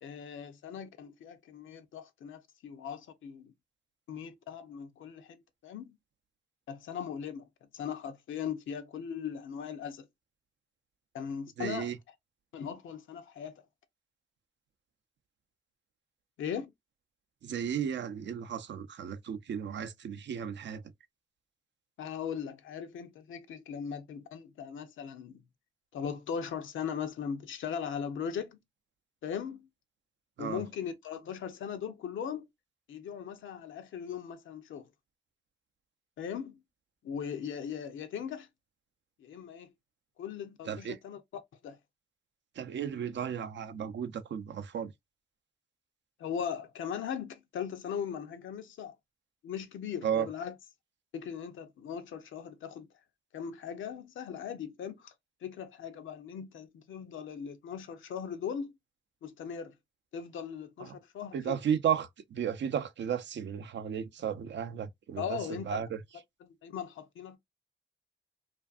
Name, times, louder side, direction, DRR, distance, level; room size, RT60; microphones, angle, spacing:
voice 1, 0.0-3.5 4.1-5.9 6.7-7.5 7.7-10.1 11.1-11.9 12.5-13.6 16.4-16.7 22.0-25.4 25.9-28.6 29.2-29.7 30.4-32.4 32.9-34.9 36.2-36.6 37.0-38.5 39.2-39.7 40.2-41.2 41.6-41.8 46.2-48.9 49.4-50.5 51.1-52.9 53.3-55.1 55.4-58.7 59.2-59.7 60.1-61.6 65.2-65.8 66.4-67.4, left 7 dB, 85° left, 0.5 m, -39 dB
voice 2, 11.6-12.0 17.4-20.8 30.4-30.6 40.7-41.0 42.6-44.9 50.0-50.3 60.8-60.9 61.3-65.4 65.6-66.0, right 8 dB, 65° right, 0.4 m, -34 dB
2.5 x 2.5 x 2.3 m
supercardioid pair, 45°, 20 cm